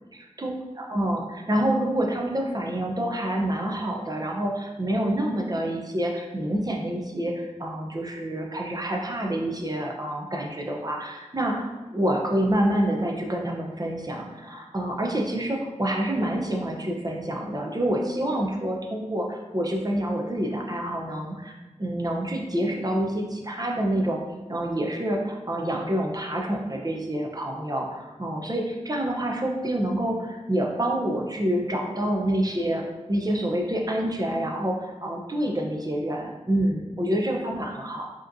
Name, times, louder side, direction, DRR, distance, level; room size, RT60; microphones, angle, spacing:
voice 1, 0.1-0.5 0.8-24.2 24.5-38.1, right 1 dB, 30° right, 0 dB, 0.7 m, -27 dB
4.8 x 2.9 x 2.6 m, 1.1 s
wide cardioid pair, 45°, 12 cm